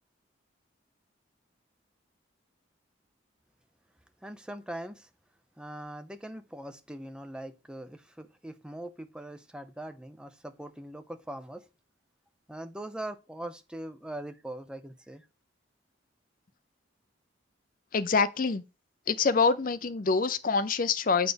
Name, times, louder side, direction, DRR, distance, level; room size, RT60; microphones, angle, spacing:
voice 1, 4.2-5.1 5.6-11.7 12.5-15.3, right 1 dB, 5° right, 0.6 m, -41 dB
voice 2, 17.9-18.6 19.1-21.3, left 4 dB, 45° left, 0.5 m, -25 dB
8.0 x 4.2 x 5.1 m
head